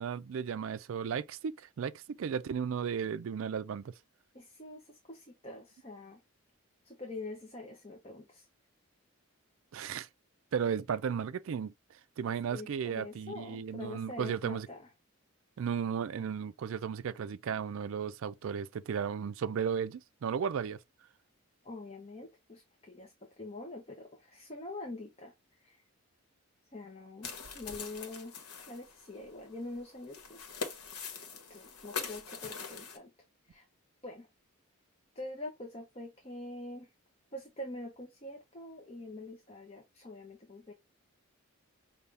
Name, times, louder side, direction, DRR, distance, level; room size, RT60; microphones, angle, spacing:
voice 1, 0.0-3.9 9.7-10.1 10.5-11.7 12.2-14.7 15.6-20.8, right 7 dB, 65° right, 0.3 m, -35 dB
voice 2, 4.3-6.2 6.8-8.5 12.4-14.9 21.6-25.8 26.7-28.3 28.7-30.6 31.5-33.1 33.5-33.7 34.0-34.3 35.1-36.9 37.3-40.7, left 2 dB, 25° left, 0.7 m, -45 dB
sound 1, 27.2-33.0, left 5 dB, 90° left, 1.1 m, -42 dB
5.5 x 2.3 x 3.3 m
head